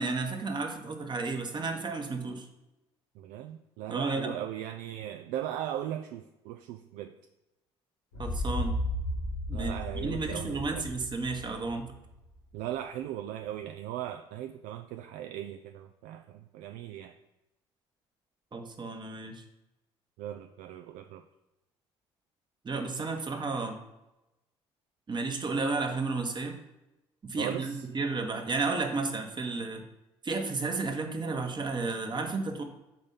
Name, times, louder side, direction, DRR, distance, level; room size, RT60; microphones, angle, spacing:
voice 1, 0.0-2.5 3.9-4.3 8.2-8.8 9.5-11.9 18.5-19.4 22.6-23.8 25.1-26.6 27.2-29.8 30.2-32.6, right 3 dB, 30° right, 4 dB, 1.1 m, -32 dB
voice 2, 3.2-7.1 9.5-10.8 12.5-17.1 20.2-21.2 27.4-27.8, right 11 dB, 65° right, 6 dB, 0.4 m, -38 dB
sound 1, 8.1-12.0, left 1 dB, 85° left, 2.1 m, -34 dB
5.2 x 4.1 x 5.4 m, 0.96 s
hypercardioid pair, 50°, 15 cm